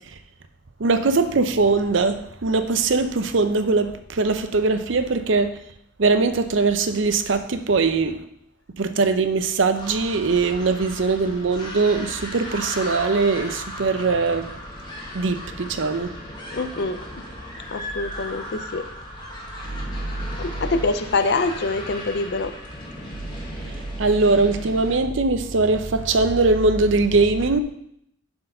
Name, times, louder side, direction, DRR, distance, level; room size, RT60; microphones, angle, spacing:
voice 1, 0.8-5.5 6.0-8.2 8.8-14.5 15.1-16.1 23.6-23.7 24.0-27.6, right 3 dB, 65° right, 9 dB, 0.6 m, -21 dB
sound 1, 9.7-25.0, left 1 dB, 20° left, 1.3 m, -36 dB
voice 2, 16.5-17.0 17.7-18.9 20.4-22.5, left 3 dB, 55° left, 10 dB, 0.5 m, -25 dB
7.5 x 4.5 x 5.5 m, 0.74 s
head